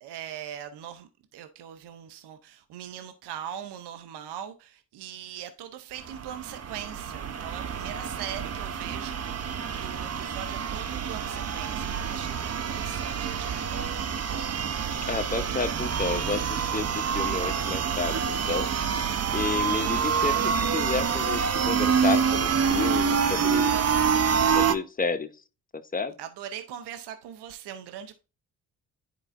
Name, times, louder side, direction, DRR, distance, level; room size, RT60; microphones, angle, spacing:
voice 1, 0.0-14.0 26.2-28.2, right 10 dB, 70° right, 0.8 m, -41 dB
sound 1, 6.0-24.7, right 7 dB, 35° right, 0.8 m, -27 dB
voice 2, 15.0-18.7 19.3-23.7 24.5-25.3 25.9-26.1, left 4 dB, 20° left, 1.1 m, -31 dB
10.0 x 4.6 x 2.6 m
hypercardioid pair, 50°, 42 cm